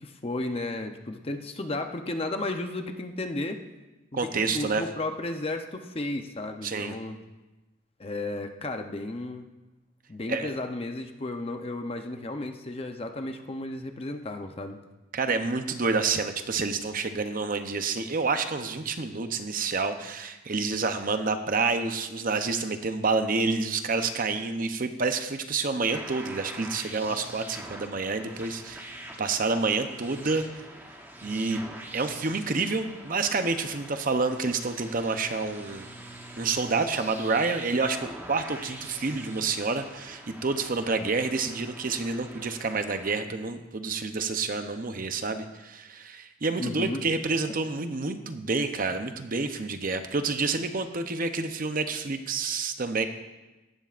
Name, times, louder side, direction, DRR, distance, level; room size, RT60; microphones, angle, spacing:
voice 1, 0.0-3.6 4.1-7.2 8.0-9.5 10.1-14.8 46.6-47.0, left 2 dB, 30° left, 6 dB, 0.7 m, -33 dB
voice 2, 4.1-4.8 6.6-7.0 10.3-10.5 15.1-30.5 31.2-31.6 31.9-35.9 36.4-53.0, right 4 dB, 40° right, 7 dB, 0.7 m, -28 dB
sound 1, 25.9-43.2, right 1 dB, 10° right, 1.0 m, -44 dB
17.0 x 12.5 x 2.5 m, 1.1 s
head